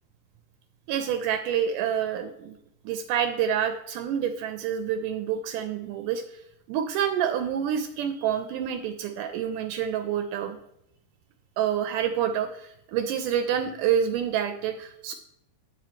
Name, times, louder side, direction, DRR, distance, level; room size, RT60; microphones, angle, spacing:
voice 1, 0.9-2.6 2.9-6.2 6.7-10.6 11.6-15.1, right 9 dB, 80° right, 6 dB, 2.0 m, -27 dB
8.6 x 5.1 x 4.4 m, 0.78 s
omnidirectional pair, 4.0 m